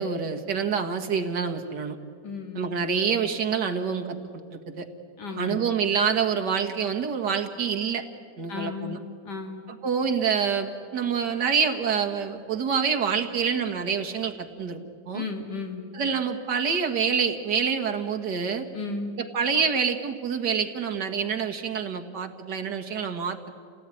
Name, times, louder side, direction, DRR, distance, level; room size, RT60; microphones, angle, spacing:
voice 1, 0.0-2.0 2.6-4.2 4.5-4.9 5.4-8.0 8.4-9.0 9.7-14.8 15.1-15.3 15.9-18.7 19.2-23.5, right 6 dB, 80° right, 4 dB, 2.2 m, -27 dB
voice 2, 2.2-2.7 5.2-5.6 8.5-9.0 9.2-9.7 15.1-15.8 18.7-19.1, left 4 dB, 75° left, 3 dB, 2.9 m, -34 dB
28.0 x 18.0 x 9.8 m, 2.2 s
omnidirectional pair, 1.8 m